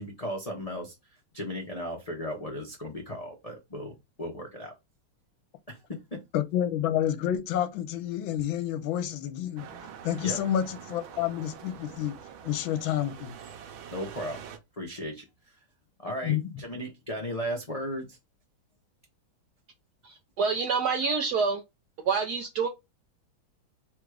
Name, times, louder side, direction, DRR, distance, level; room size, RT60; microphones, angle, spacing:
voice 1, 0.0-4.7 5.7-6.2 10.2-10.4 13.9-14.4 14.7-15.6 16.0-18.2, equal, 50° left, 0.4 m, -36 dB
voice 2, 6.3-9.7 10.0-12.1 12.4-13.3 16.2-16.4, left 11 dB, 80° left, 1.4 m, -29 dB
sound 1, 9.6-14.6, right 8 dB, 90° right, 1.6 m, -45 dB
voice 3, 20.0-21.6 22.0-22.7, right 5 dB, 70° right, 1.0 m, -27 dB
3.6 x 2.4 x 4.6 m
omnidirectional pair, 2.2 m